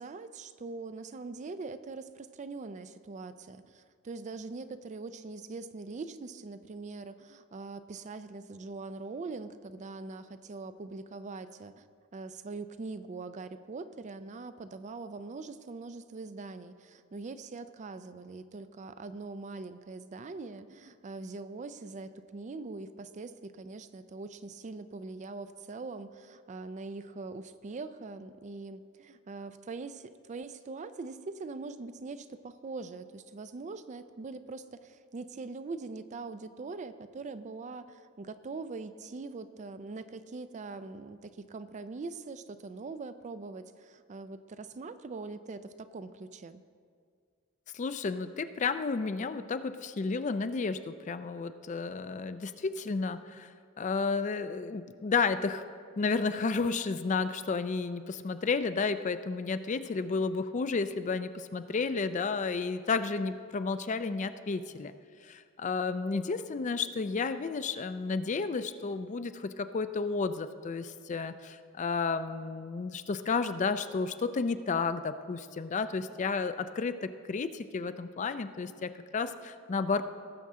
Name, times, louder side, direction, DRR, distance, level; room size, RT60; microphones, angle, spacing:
voice 1, 0.0-11.9 12.1-46.6, right 3 dB, 35° right, 12 dB, 0.4 m, -42 dB
voice 2, 47.7-53.5 53.8-55.6 56.0-64.9 65.2-80.0, left 4 dB, 35° left, 11 dB, 0.4 m, -32 dB
18.5 x 7.4 x 3.7 m, 2.1 s
head